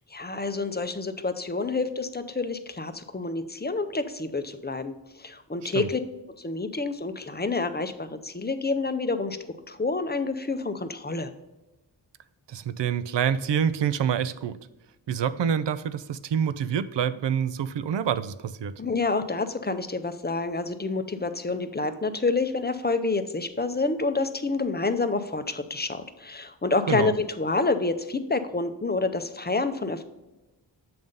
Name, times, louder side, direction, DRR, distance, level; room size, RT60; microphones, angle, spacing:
voice 1, 0.1-4.9 5.2-6.0 6.4-9.4 9.7-11.3 18.8-30.0, left 3 dB, 20° left, 9 dB, 0.5 m, -28 dB
voice 2, 12.5-14.6 15.1-18.7 26.9-27.1, right 8 dB, 70° right, 14 dB, 0.5 m, -27 dB
7.7 x 3.6 x 5.3 m, 1.0 s
wide cardioid pair, 65°, 45 cm